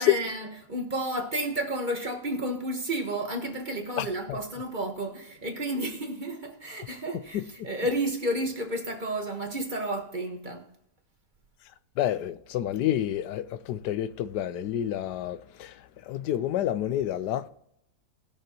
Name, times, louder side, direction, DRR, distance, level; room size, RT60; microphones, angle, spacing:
voice 1, 0.0-10.7, right 1 dB, 30° right, 1.4 m, -31 dB
voice 2, 4.0-4.4 7.3-7.4 12.0-17.5, left 11 dB, 85° left, 1.2 m, -30 dB
19.5 x 6.9 x 2.9 m
omnidirectional pair, 1.7 m